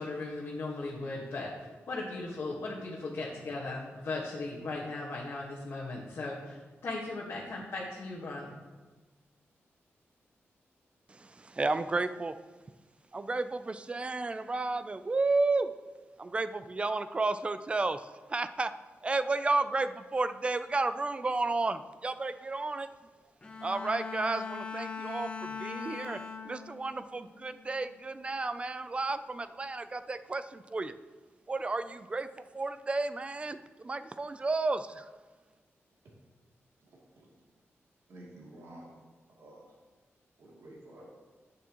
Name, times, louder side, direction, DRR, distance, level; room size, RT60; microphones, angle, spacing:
voice 1, 0.0-1.5 1.9-8.5, left 2 dB, 60° left, -5 dB, 1.4 m, -37 dB
voice 2, 11.1-12.4 13.1-18.7 19.0-22.9 23.6-30.9 31.5-35.1, right 3 dB, 25° right, 12 dB, 0.3 m, -32 dB
Bowed string instrument, 23.4-27.0 27.4-27.8, left 5 dB, 20° left, 0.8 m, -40 dB
voice 3, 36.8-37.3 38.1-39.0 39.3-39.8 40.4-41.1, right 1 dB, 80° right, -4 dB, 2.6 m, -51 dB
10.5 x 8.5 x 3.0 m, 1.3 s
wide cardioid pair, 165°, 5 cm